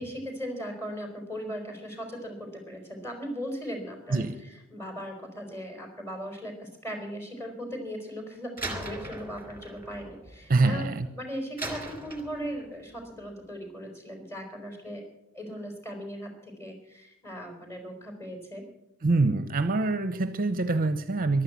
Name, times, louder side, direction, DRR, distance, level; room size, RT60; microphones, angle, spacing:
voice 1, 0.0-15.1 15.3-18.6, equal, 10° left, 4 dB, 4.4 m, -38 dB
Slam, 8.6-11.0 11.6-12.8, right 2 dB, 10° right, 2.7 m, -39 dB
voice 2, 10.5-11.1 19.0-21.4, right 3 dB, 40° right, 12 dB, 0.8 m, -25 dB
14.5 x 12.0 x 8.2 m, 0.82 s
head